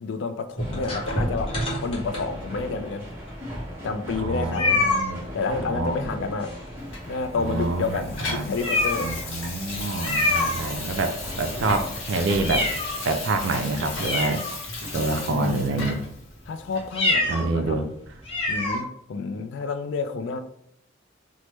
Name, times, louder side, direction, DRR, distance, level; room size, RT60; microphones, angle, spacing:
voice 1, 0.0-1.6 1.8-3.1 3.8-4.9 5.3-6.5 7.1-9.2 15.3-16.0 16.5-17.9 18.5-20.4, left 4 dB, 65° left, 0.3 m, -30 dB
sound 1, 0.6-2.7 3.3-3.4 3.6-3.7 4.5-5.1 6.4-7.0 7.3-7.4 7.9-8.0 8.5-9.3 10.0-11.0 11.5-13.1 13.6-13.7 13.9-15.0 15.5-15.8 16.8-17.5 17.8-17.9 18.2-18.8, left 2 dB, 30° left, 0.8 m, -26 dB
sound 2, 0.6-14.0, equal, 10° right, 0.8 m, -39 dB
voice 2, 4.2-5.3 5.6-6.2 7.4-8.5 9.0-12.7 13.0-14.4 14.9-16.0 17.3-17.8, right 3 dB, 65° right, 0.4 m, -27 dB
Water tap faucet / Sink (filling or washing), 6.9-16.2 16.7-16.9, left 3 dB, 80° left, 0.8 m, -35 dB
3.2 x 2.1 x 3.0 m
head